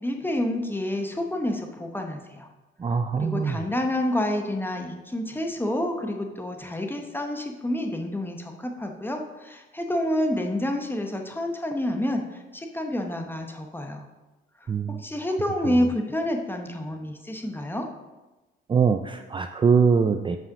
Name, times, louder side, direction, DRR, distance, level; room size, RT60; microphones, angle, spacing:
voice 1, 0.0-2.5 3.2-12.2 12.5-14.0 14.9-17.9, left 1 dB, 10° left, 3 dB, 1.0 m, -28 dB
voice 2, 2.8-3.6 14.7-15.0 15.7-15.9 18.7-20.4, right 5 dB, 25° right, 8 dB, 0.4 m, -23 dB
5.7 x 5.0 x 6.4 m, 1.1 s
cardioid pair, 90°, 20 cm